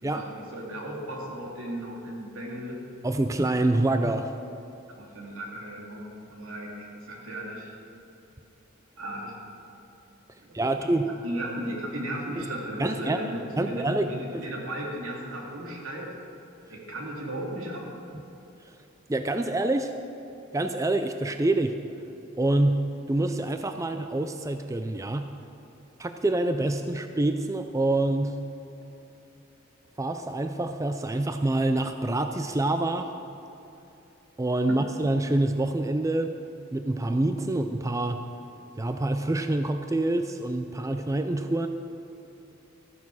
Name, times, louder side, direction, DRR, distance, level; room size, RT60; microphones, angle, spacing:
voice 1, 0.0-2.8 5.0-7.8 9.0-9.4 10.4-16.1 16.7-17.9, right 1 dB, 80° right, -2 dB, 2.7 m, -36 dB
voice 2, 3.0-4.3 10.5-11.1 12.8-13.2 13.6-14.1 14.3-14.5 19.1-19.9 20.5-21.7 22.4-25.3 26.0-28.4 30.0-33.1 34.4-36.4 36.7-38.2 38.8-41.7, right 2 dB, 15° right, 7 dB, 0.4 m, -26 dB
14.0 x 9.5 x 6.2 m, 2.8 s
head